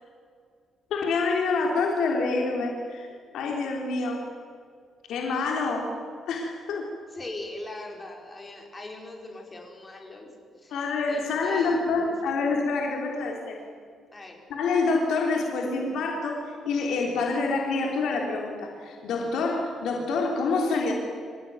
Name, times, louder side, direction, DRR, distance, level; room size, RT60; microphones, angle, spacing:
voice 1, 0.9-3.1 3.3-4.2 5.1-6.0 6.3-6.9 10.7-13.6 14.5-20.9, left 3 dB, 75° left, 1 dB, 3.6 m, -27 dB
voice 2, 7.1-10.3 10.6-10.8 11.1-12.1 14.1-14.4, left 2 dB, 20° left, 1 dB, 5.2 m, -41 dB
26.5 x 16.0 x 9.5 m, 2.2 s
cardioid pair, 130°, 0 cm